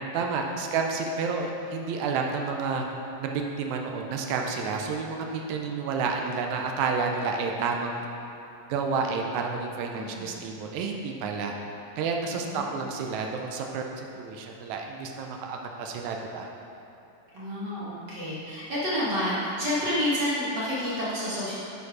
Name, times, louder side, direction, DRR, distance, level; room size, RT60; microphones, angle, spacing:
voice 1, 0.1-2.8 3.2-8.1 8.7-11.5 12.0-16.5, right 4 dB, 85° right, 2 dB, 1.6 m, -30 dB
voice 2, 9.9-10.3 12.3-12.8 17.3-21.5, left 1 dB, 45° right, -9 dB, 1.6 m, -29 dB
9.4 x 4.6 x 4.8 m, 2.8 s
omnidirectional pair, 3.9 m